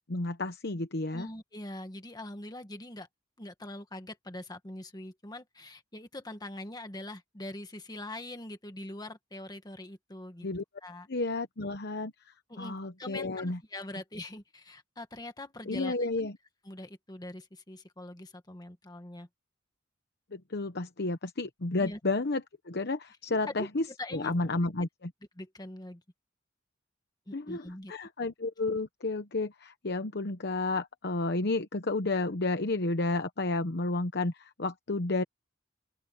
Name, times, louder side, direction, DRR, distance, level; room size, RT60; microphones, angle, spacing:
voice 1, 0.0-1.3 10.4-10.6 11.1-13.6 15.7-16.3 20.3-23.9 24.1-25.1 27.3-35.2, left 2 dB, 60° left, 1.0 m, -31 dB
voice 2, 1.1-3.1 3.4-10.5 10.8-11.1 12.5-16.1 16.6-19.3 21.8-22.0 23.3-23.7 24.0-24.5 25.3-26.0 27.3-27.9, left 1 dB, 20° left, 1.6 m, -43 dB
open air
head